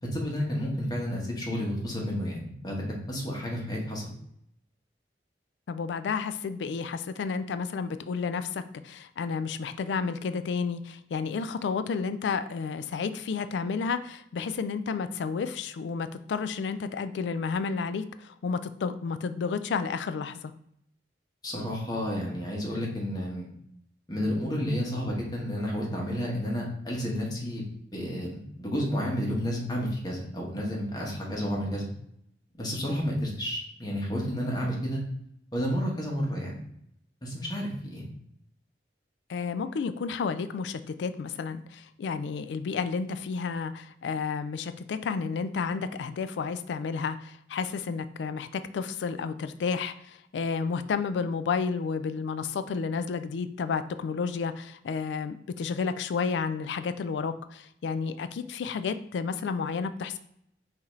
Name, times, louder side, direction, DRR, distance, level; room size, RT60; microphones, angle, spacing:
voice 1, 0.1-4.1 21.4-23.5 24.1-27.6 27.9-31.9 32.6-35.0 35.5-36.6 37.2-38.0, equal, 25° left, -2 dB, 1.1 m, -31 dB
voice 2, 5.7-20.5 39.3-60.2, left 5 dB, 80° left, 12 dB, 0.3 m, -31 dB
5.7 x 2.8 x 3.1 m, 0.72 s
head